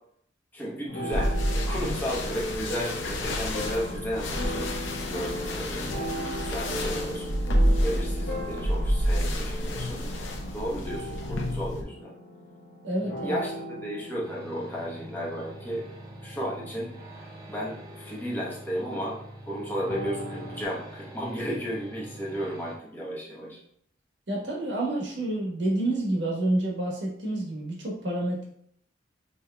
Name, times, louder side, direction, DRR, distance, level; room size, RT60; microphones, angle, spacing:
voice 1, 0.5-4.7 5.1-7.4 7.8-10.0 10.5-12.1 13.2-13.5 13.8-15.8 16.2-16.9 17.5-19.2 19.4-23.6, equal, 10° left, -5 dB, 1.0 m, -34 dB
sound 1, 0.9-20.6, equal, 55° left, 1.0 m, -38 dB
sound 2, 1.1-11.8, equal, 85° left, 0.6 m, -29 dB
voice 2, 12.8-13.4 24.3-28.4, right 1 dB, 65° right, -3 dB, 1.2 m, -28 dB
sound 3, 14.2-22.8, right 1 dB, 20° right, 0.6 m, -45 dB
5.5 x 3.0 x 2.2 m, 0.67 s
head